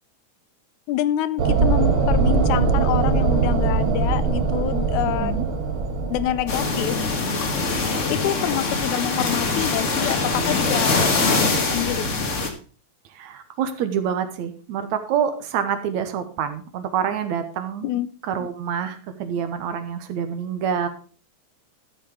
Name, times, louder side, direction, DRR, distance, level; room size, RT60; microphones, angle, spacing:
voice 1, 0.9-5.4 6.1-7.0 8.1-12.1 17.8-18.1, left 13 dB, 85° left, 15 dB, 2.1 m, -27 dB
sound 1, 1.4-7.0, right 4 dB, 50° right, 2.0 m, -21 dB
sound 2, 6.5-12.5, left 3 dB, 35° left, 1.2 m, -23 dB
voice 2, 13.1-17.9 18.2-20.9, right 8 dB, 75° right, 9 dB, 2.4 m, -27 dB
12.5 x 6.4 x 5.0 m, 0.39 s
omnidirectional pair, 3.3 m